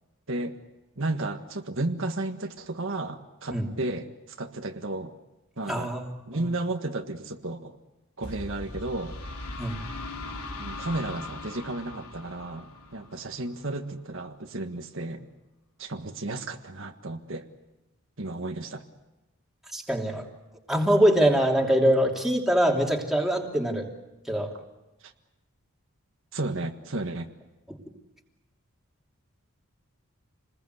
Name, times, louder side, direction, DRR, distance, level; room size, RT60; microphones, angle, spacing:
voice 1, 1.0-4.1 4.4-5.1 5.6-5.9 6.3-7.7 8.2-9.2 10.6-15.3 15.8-17.5 18.2-18.8 25.0-25.1 26.3-27.3, right 2 dB, 60° right, 4 dB, 1.6 m, -33 dB
voice 2, 5.7-6.1 9.6-9.8 19.7-20.2 20.7-23.8 24.3-24.5, equal, ahead, 0 dB, 3.0 m, -23 dB
sound 1, 8.2-13.9, left 2 dB, 80° left, 3.1 m, -39 dB
28.5 x 21.0 x 8.1 m, 1.0 s
head